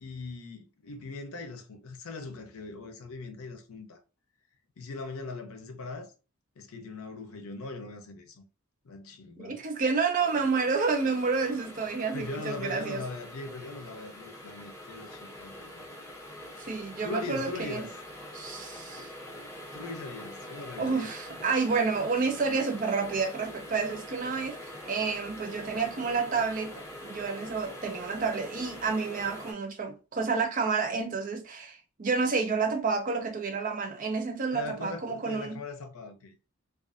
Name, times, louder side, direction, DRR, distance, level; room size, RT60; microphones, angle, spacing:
voice 1, 0.0-4.0 4.8-6.1 6.6-8.4 8.8-9.6 12.1-15.8 17.0-17.9 19.7-21.1 34.5-36.3, left 3 dB, 75° left, 0.5 m, -40 dB
voice 2, 9.4-13.0 16.6-17.8 18.3-19.1 20.8-26.7 27.0-35.6, right 4 dB, 40° right, 0.4 m, -29 dB
sound 1, 10.2-29.5, left 1 dB, 15° left, 0.7 m, -44 dB
2.5 x 2.3 x 2.4 m
head